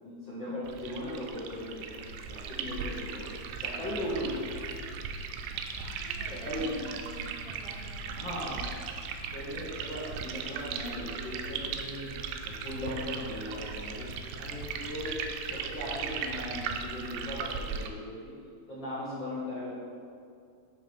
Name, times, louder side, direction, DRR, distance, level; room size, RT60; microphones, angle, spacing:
voice 1, 0.0-1.9 2.3-3.3 3.5-4.5 6.3-6.7 8.1-8.8 9.3-12.1 12.4-14.1 14.4-15.1 15.4-18.1 18.7-19.8, left 1 dB, 55° left, -9 dB, 1.3 m, -38 dB
sound 1, 0.7-17.9, right 6 dB, 90° right, 2.4 m, -38 dB
sound 2, 3.2-17.5, left 3 dB, 75° left, 1.4 m, -51 dB
voice 2, 5.5-8.5 9.2-9.4 14.8-15.0, right 1 dB, 70° right, -3 dB, 1.8 m, -49 dB
8.8 x 3.5 x 6.1 m, 2.4 s
omnidirectional pair, 4.2 m